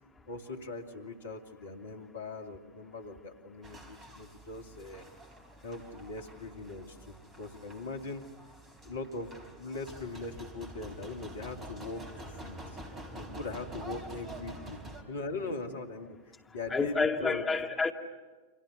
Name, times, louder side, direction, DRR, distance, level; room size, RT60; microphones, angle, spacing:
voice 1, 0.3-5.1 5.6-8.3 8.8-12.0 12.3-12.8 13.1-17.4, left 3 dB, 65° left, 6 dB, 2.5 m, -41 dB
sound 1, 3.6-15.0, right 1 dB, 25° right, 4.2 m, -47 dB
voice 2, 16.7-17.9, left 4 dB, 15° left, 3 dB, 2.3 m, -29 dB
29.5 x 26.5 x 7.0 m, 1.3 s
figure-of-eight pair, 90°, 0 cm